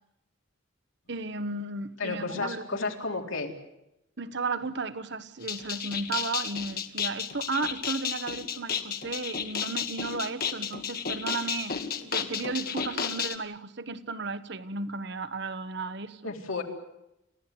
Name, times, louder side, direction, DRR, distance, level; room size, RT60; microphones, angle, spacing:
voice 1, 1.1-2.6 4.2-11.8 12.0-16.3, right 3 dB, 60° right, 1.3 m, -34 dB
voice 2, 2.0-3.5 16.2-16.6, left 3 dB, 80° left, 3.9 m, -32 dB
sound 1, 5.4-13.4, left 7 dB, 50° left, 1.8 m, -33 dB
29.0 x 16.0 x 9.5 m
head